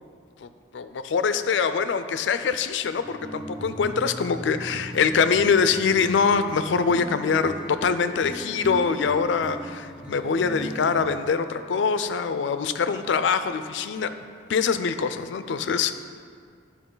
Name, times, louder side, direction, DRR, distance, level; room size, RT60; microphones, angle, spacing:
voice 1, 0.7-14.1 14.5-16.0, left 5 dB, 75° left, 11 dB, 0.4 m, -24 dB
sound 1, 3.0-11.2, equal, 5° right, 0.5 m, -37 dB
10.0 x 4.4 x 3.8 m, 2.1 s
head